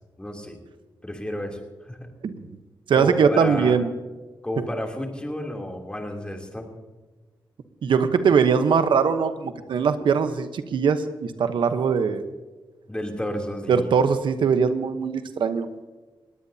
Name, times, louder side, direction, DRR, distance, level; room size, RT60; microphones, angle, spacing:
voice 1, 0.2-0.6 1.0-2.0 2.9-3.8 4.4-6.7 12.9-13.9, left 1 dB, 10° left, 2 dB, 3.1 m, -32 dB
voice 2, 2.9-3.9 7.8-12.2 13.7-15.7, right 6 dB, 85° right, 9 dB, 1.0 m, -21 dB
21.0 x 17.0 x 2.8 m, 1.3 s
cardioid pair, 95°, 8 cm